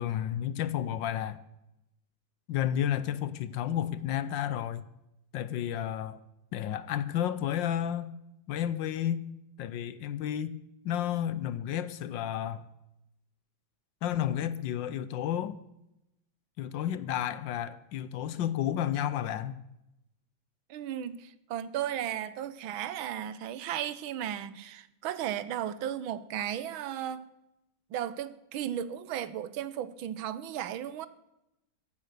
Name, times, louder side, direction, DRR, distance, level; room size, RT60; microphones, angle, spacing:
voice 1, 0.0-1.4 2.5-4.9 5.3-6.2 6.5-8.1 8.5-9.3 9.6-10.6 10.8-12.7 14.0-15.6 16.6-19.6, left 10 dB, 70° left, 1.3 m, -31 dB
voice 2, 20.7-27.3 27.9-31.1, right 10 dB, 80° right, 1.6 m, -35 dB
14.5 x 8.6 x 6.7 m
omnidirectional pair, 2.2 m